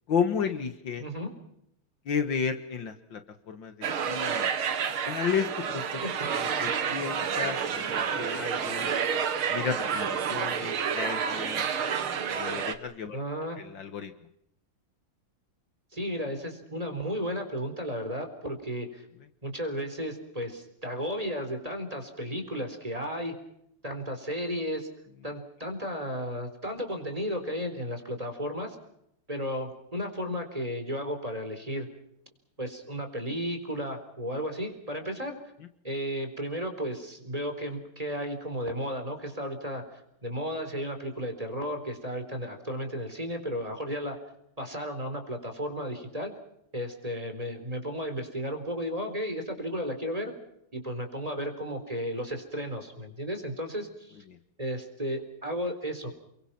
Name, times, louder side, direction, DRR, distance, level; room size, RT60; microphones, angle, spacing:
voice 1, 0.1-1.0 2.1-3.2 3.5-4.5 5.1-5.8 6.6-8.9 9.5-11.7 12.3-13.2 13.6-14.1, left 6 dB, 65° left, 9 dB, 2.1 m, -32 dB
voice 2, 1.0-1.3 5.9-6.3 13.1-13.6 15.9-19.1 19.4-23.4 23.8-24.9 25.2-28.8 29.3-31.9 32.6-35.4 35.8-44.2 44.6-46.4 46.7-50.3 50.7-54.2 54.6-56.1, equal, 15° right, 6 dB, 4.2 m, -34 dB
sound 1, 3.8-12.7, right 7 dB, 85° right, 2.4 m, -29 dB
30.0 x 23.0 x 5.9 m, 0.75 s
omnidirectional pair, 2.3 m